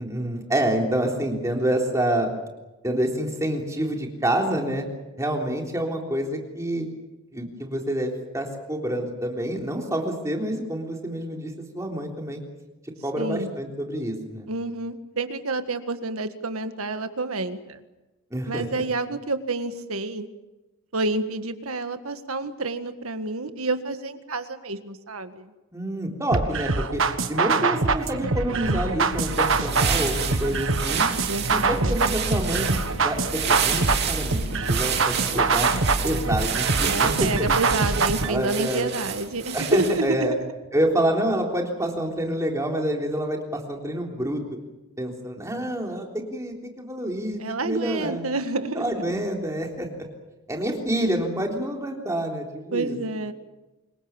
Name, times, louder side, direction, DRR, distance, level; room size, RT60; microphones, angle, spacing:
voice 1, 0.0-2.3 2.8-4.9 5.2-6.9 7.3-12.4 13.0-14.5 18.3-18.8 25.7-27.0 27.3-31.1 31.5-32.7 33.0-35.7 36.0-37.5 38.3-38.9 39.5-40.3 40.7-44.4 45.0-48.3 48.8-49.9 50.5-52.9, right 1 dB, 15° right, 1 dB, 3.5 m, -27 dB
voice 2, 13.2-13.5 14.5-17.8 18.5-20.3 20.9-25.5 31.3-32.1 36.9-40.3 47.4-49.2 52.7-53.3, right 2 dB, 85° right, 9 dB, 1.8 m, -29 dB
sound 1, 26.3-38.3, right 4 dB, 65° right, 1.6 m, -24 dB
sound 2, 28.6-36.4, equal, 85° left, 3.4 m, -35 dB
sound 3, 29.1-40.1, right 8 dB, 50° right, 3.1 m, -30 dB
26.0 x 22.0 x 7.3 m, 1.1 s
head